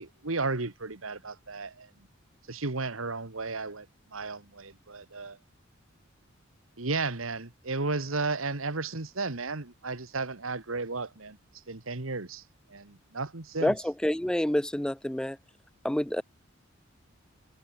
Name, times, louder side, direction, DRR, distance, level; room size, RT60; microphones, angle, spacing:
voice 1, 0.0-1.9 2.5-3.9 4.1-5.4 6.8-11.4 11.7-12.4 12.7-13.7, right 3 dB, 80° right, 1.8 m, -34 dB
voice 2, 13.6-15.4 15.8-16.2, left 1 dB, 5° left, 0.3 m, -28 dB
head